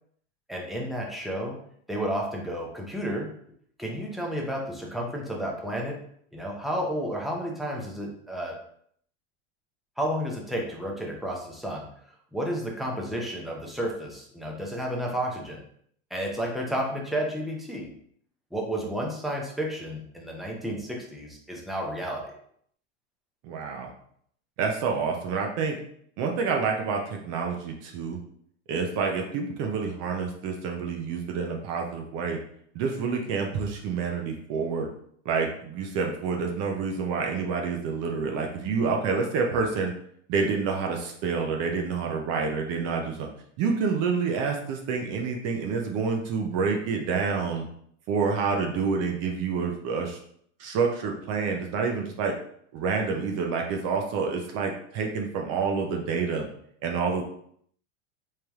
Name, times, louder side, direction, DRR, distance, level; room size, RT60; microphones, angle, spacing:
voice 1, 0.5-1.6 1.9-3.3 3.8-6.0 6.3-8.6 10.0-11.9 12.3-15.6 16.1-17.9 18.5-22.3, equal, ahead, -1 dB, 0.6 m, -31 dB
voice 2, 23.4-23.9 24.6-25.8 26.2-28.2 28.7-32.4 32.7-34.9 35.2-39.9 40.3-43.3 43.6-47.6 48.1-50.2 50.6-52.3 52.7-56.5 56.8-57.2, right 5 dB, 45° right, 2 dB, 0.6 m, -28 dB
3.3 x 2.8 x 3.5 m, 0.66 s
supercardioid pair, 130°, 37 cm